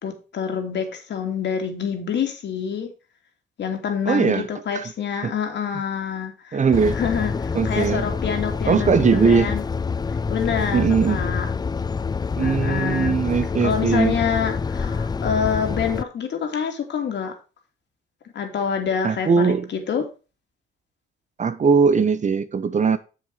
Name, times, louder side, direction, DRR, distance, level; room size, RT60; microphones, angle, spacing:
voice 1, 0.0-2.9 3.6-6.7 6.9-9.6 10.3-11.5 12.4-13.2 13.6-17.3 18.3-20.1, left 7 dB, 60° left, 2.9 m, -27 dB
voice 2, 4.1-4.4 4.7-4.8 5.2-5.3 6.5-7.0 7.5-8.0 8.7-9.5 10.7-11.2 12.4-14.1 19.0-19.7 21.4-23.0, right 5 dB, 35° right, 0.9 m, -20 dB
sound 1, 6.7-16.0, left 5 dB, 20° left, 0.4 m, -26 dB
7.4 x 7.0 x 4.9 m
cardioid pair, 90°, 20 cm